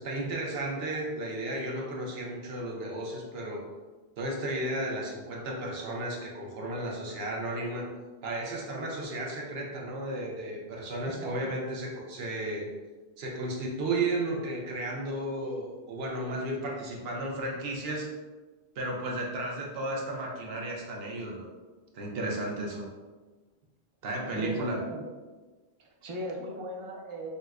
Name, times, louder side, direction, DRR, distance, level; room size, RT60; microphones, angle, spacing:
voice 1, 0.0-3.7 4.2-7.9 8.2-12.7 13.2-18.2 18.8-21.5 21.9-22.9 24.0-24.8, right 1 dB, 70° right, -1 dB, 0.8 m, -34 dB
voice 2, 11.1-11.5 24.4-25.1 25.8-27.3, right 1 dB, 45° right, 0 dB, 0.4 m, -38 dB
4.0 x 2.1 x 2.3 m, 1.3 s
omnidirectional pair, 1.1 m